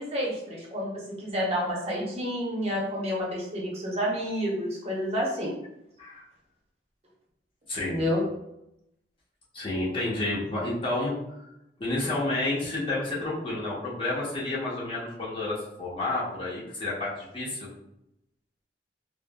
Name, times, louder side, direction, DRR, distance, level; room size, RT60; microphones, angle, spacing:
voice 1, 0.0-5.5 7.8-8.2, equal, 35° right, -3 dB, 0.7 m, -29 dB
voice 2, 7.7-8.0 9.5-11.2 11.8-17.7, left 2 dB, 30° left, -6 dB, 0.9 m, -30 dB
3.6 x 2.0 x 2.2 m, 0.83 s
head